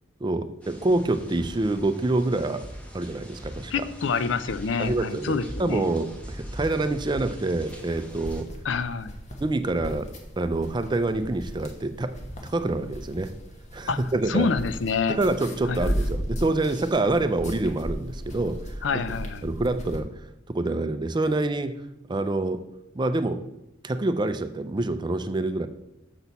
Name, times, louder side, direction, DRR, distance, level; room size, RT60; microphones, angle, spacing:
voice 1, 0.2-2.6 2.9-3.9 4.8-8.5 9.4-10.1 10.4-12.2 12.4-13.3 13.7-14.5 15.1-18.8 19.4-20.1 20.5-22.7 22.9-23.5 23.8-25.7, right 2 dB, 25° right, 10 dB, 0.4 m, -26 dB
sound 1, 0.6-8.4, equal, 5° left, 1.1 m, -41 dB
voice 2, 3.7-5.9 8.6-9.1 13.9-14.0 14.3-15.2 15.6-15.9 18.8-19.5, left 5 dB, 70° left, 13 dB, 0.5 m, -27 dB
sound 2, 7.7-20.0, equal, 35° left, 1.2 m, -36 dB
6.9 x 6.2 x 4.1 m, 0.89 s
head